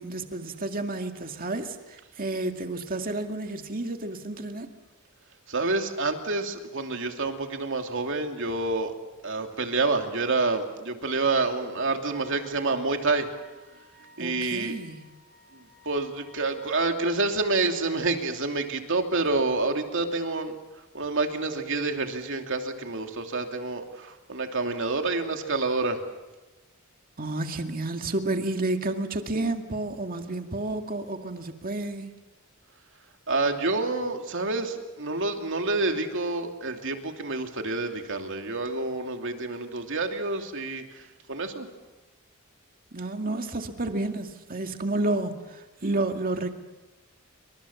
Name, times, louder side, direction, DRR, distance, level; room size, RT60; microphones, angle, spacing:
voice 1, 0.0-4.7 14.2-15.1 27.2-32.1 42.9-46.6, right 2 dB, 40° right, 5 dB, 2.2 m, -31 dB
voice 2, 5.5-8.9 9.2-13.3 14.2-14.8 15.5-20.6 20.9-26.0 33.3-41.7, right 3 dB, 60° right, 4 dB, 2.9 m, -28 dB
Wind instrument woodwind instrument, 12.0-16.9, left 1 dB, 10° left, 7.8 m, -55 dB
28.0 x 25.0 x 7.2 m, 1.1 s
head